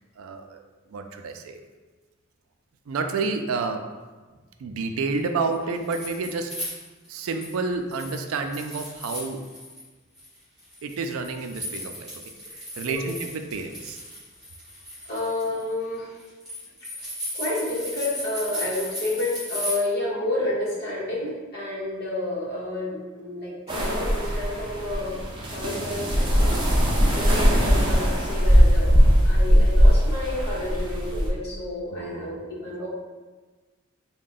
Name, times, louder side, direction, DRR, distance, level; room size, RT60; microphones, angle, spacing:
voice 1, 0.2-0.6 0.9-1.6 2.9-3.8 4.6-6.5 7.1-9.4 10.8-12.1 12.5-14.0 27.1-27.3 31.9-32.3 32.8-32.9, right 4 dB, 80° right, 5 dB, 0.4 m, -30 dB
sound 1, 5.5-7.6 7.9-9.8 10.1-19.7, equal, ahead, 1.4 m, -36 dB
voice 2, 15.1-16.1 17.3-26.5 27.1-32.9, left 2 dB, 50° left, -6 dB, 1.0 m, -30 dB
sound 2, 23.7-31.3, equal, 25° right, 0.5 m, -20 dB
3.6 x 2.2 x 3.9 m, 1.3 s
head